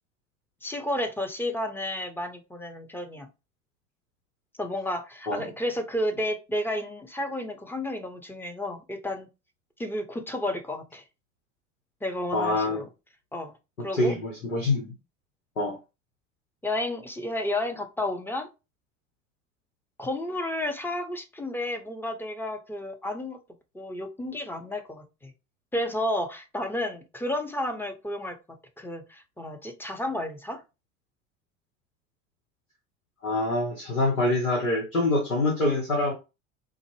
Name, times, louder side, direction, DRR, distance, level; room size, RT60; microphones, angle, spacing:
voice 1, 0.6-3.3 4.6-9.3 9.8-11.0 12.0-12.9 13.3-13.5 13.8-14.1 16.6-18.5 20.0-23.4 23.7-25.3 25.7-28.4 28.8-30.6, left 1 dB, 5° left, 6 dB, 0.6 m, -31 dB
voice 2, 12.3-12.8 13.9-14.9 15.6-15.8 33.2-36.1, left 2 dB, 90° left, -1 dB, 1.0 m, -25 dB
3.8 x 2.1 x 3.0 m, 0.28 s
figure-of-eight pair, 70°, 40 cm